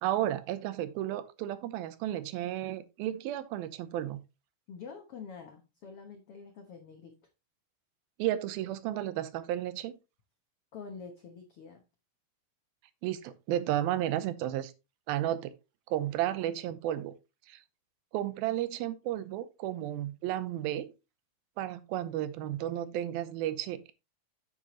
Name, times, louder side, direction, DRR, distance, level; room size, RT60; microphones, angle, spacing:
voice 1, 0.0-4.2 8.2-10.0 13.0-14.7 15.1-15.5 15.9-17.2 17.5-17.6 18.1-20.9 21.6-23.9, right 12 dB, 90° right, 2.6 m, -33 dB
voice 2, 4.7-7.2 10.7-11.8, left 5 dB, 85° left, 1.2 m, -46 dB
8.8 x 7.8 x 3.0 m
omnidirectional pair, 4.3 m